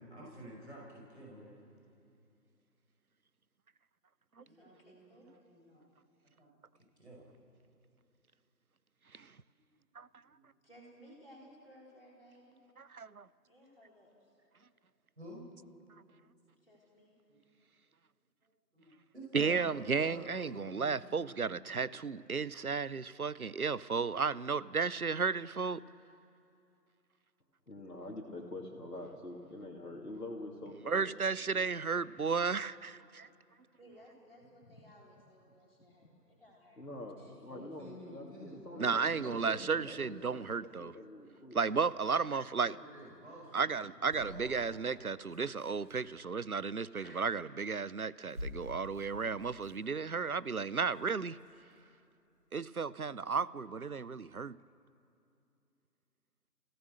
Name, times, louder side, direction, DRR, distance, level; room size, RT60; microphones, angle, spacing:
voice 1, 0.1-1.6 4.4-5.8 6.3-6.5 7.0-7.3 9.7-9.8 10.3-10.5 11.4-11.5 15.2-15.7 17.3-17.4 18.4-22.0 37.2-40.5 42.6-44.9, equal, 45° right, -3 dB, 5.3 m, -51 dB
voice 2, 4.4-5.3 10.6-12.6 13.5-14.3 16.6-17.1 33.8-36.8 37.2-37.3 47.0-47.2, equal, 35° left, -3 dB, 4.2 m, -59 dB
voice 3, 12.8-13.3 19.3-25.8 30.9-33.3 38.8-40.9 41.5-42.8 43.5-51.4 52.5-54.6, right 5 dB, 60° right, 19 dB, 0.6 m, -33 dB
voice 4, 27.7-31.2 31.5-31.7 36.8-40.0 40.6-41.6, left 1 dB, 70° left, -2 dB, 2.8 m, -46 dB
sound 1, 44.1-46.1 47.6-47.8 48.1-51.8 52.3-52.4, left 1 dB, 10° right, 6.0 m, -49 dB
29.5 x 17.0 x 6.5 m, 2.7 s
figure-of-eight pair, 175°, 49 cm